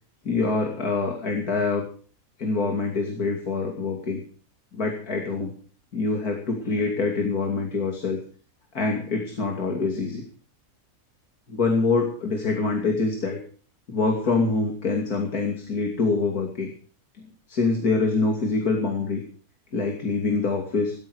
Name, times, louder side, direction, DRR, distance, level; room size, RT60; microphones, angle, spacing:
voice 1, 0.2-1.8 2.4-4.2 4.7-5.5 5.9-8.2 8.7-10.2 11.5-13.4 13.9-16.7 17.5-19.2 19.7-20.9, left 3 dB, 70° left, 2 dB, 3.2 m, -25 dB
16.5 x 15.0 x 4.8 m, 0.42 s
omnidirectional pair, 1.7 m